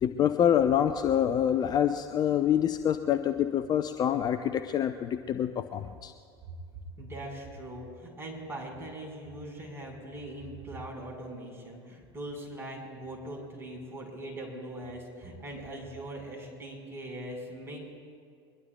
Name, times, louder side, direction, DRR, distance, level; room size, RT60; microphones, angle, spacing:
voice 1, 0.0-6.1, left 9 dB, 30° left, 10 dB, 0.5 m, -26 dB
voice 2, 7.0-18.0, right 1 dB, 20° right, 0 dB, 4.7 m, -41 dB
22.5 x 21.0 x 2.3 m, 2.2 s
figure-of-eight pair, 75°, 13 cm